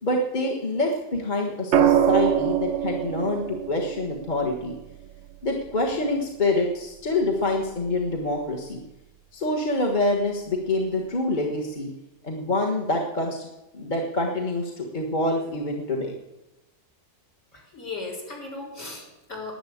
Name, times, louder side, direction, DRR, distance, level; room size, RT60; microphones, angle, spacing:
voice 1, 0.0-4.7 5.4-8.8 9.3-11.9 12.2-13.5 13.7-16.1, left 2 dB, 30° left, -1 dB, 1.5 m, -26 dB
sound 1, 1.7-5.9 7.6-7.9, right 10 dB, 60° right, 0.9 m, -25 dB
voice 2, 17.5-19.5, left 3 dB, 50° left, -1 dB, 4.6 m, -37 dB
11.0 x 9.6 x 8.6 m, 0.96 s
omnidirectional pair, 1.6 m